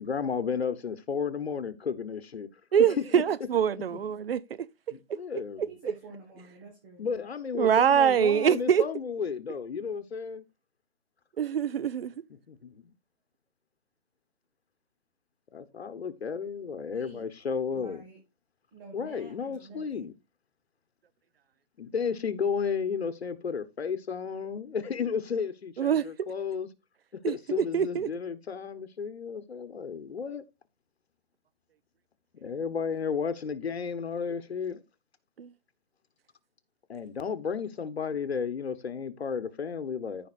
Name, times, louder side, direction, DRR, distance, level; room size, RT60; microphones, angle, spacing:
voice 1, 0.0-2.5 2.9-3.0 3.7-3.8 4.9-5.6 7.0-10.4 12.5-12.9 15.5-18.1 18.9-20.1 21.8-26.7 27.1-30.4 32.4-34.8 36.9-40.3, left 6 dB, 85° left, 1.1 m, -33 dB
voice 2, 2.7-4.7 5.1-5.2 5.6-5.9 7.5-8.9 11.4-12.1 25.8-26.3 27.2-28.1 35.4-35.5, right 8 dB, 70° right, 0.6 m, -25 dB
voice 3, 5.7-7.1 16.9-17.2 17.7-18.2 18.7-20.1, right 3 dB, 20° right, 1.6 m, -49 dB
14.5 x 5.2 x 2.5 m
hypercardioid pair, 165°, 31 cm